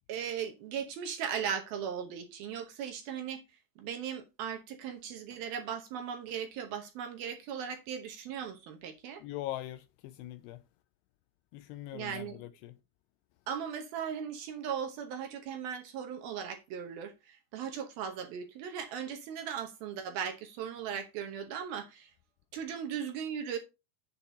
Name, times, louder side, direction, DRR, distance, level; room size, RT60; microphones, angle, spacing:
voice 1, 0.1-3.4 3.8-9.2 11.9-12.4 13.5-22.1 22.5-23.6, right 8 dB, 70° right, 2.5 m, -38 dB
voice 2, 9.2-10.6 11.5-12.8, left 14 dB, 80° left, 2.4 m, -41 dB
8.6 x 7.7 x 3.9 m
omnidirectional pair, 5.2 m